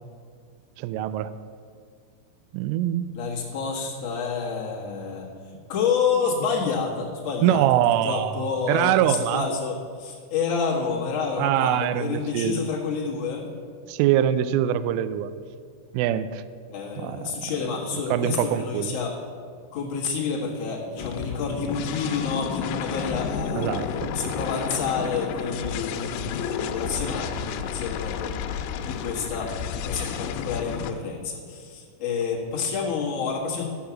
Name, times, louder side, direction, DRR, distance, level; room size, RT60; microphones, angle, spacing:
voice 1, 0.8-1.3 2.5-3.1 7.4-9.5 11.4-12.6 13.9-15.3 15.9-16.4 17.0-17.4 18.1-19.0 23.6-24.1, right 11 dB, 85° right, 13 dB, 3.0 m, -23 dB
voice 2, 3.1-5.3 5.7-7.7 8.0-13.5 16.7-19.1 19.7-28.5 28.8-33.6, left 5 dB, 70° left, -5 dB, 1.5 m, -29 dB
sound 1, 21.0-30.9, left 7 dB, 90° left, 3.2 m, -31 dB
13.0 x 6.5 x 7.2 m, 2.1 s
omnidirectional pair, 5.8 m